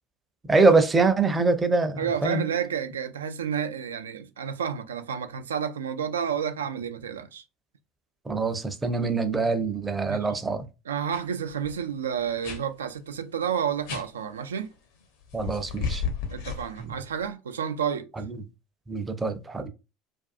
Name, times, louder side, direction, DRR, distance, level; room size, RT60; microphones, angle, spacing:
voice 1, 0.5-2.4 8.3-10.6 15.3-16.0 16.8-16.9 18.9-19.7, right 3 dB, 20° right, 0.5 m, -24 dB
voice 2, 2.0-7.4 10.1-10.3 10.9-14.7 16.3-18.1, right 8 dB, 75° right, 0.3 m, -30 dB
sound 1, 11.1-11.2 11.5-11.8 12.4-12.6 13.9-14.0 15.3-17.2, left 6 dB, 65° left, 0.6 m, -33 dB
2.5 x 2.3 x 2.4 m
figure-of-eight pair, 70°, 0 cm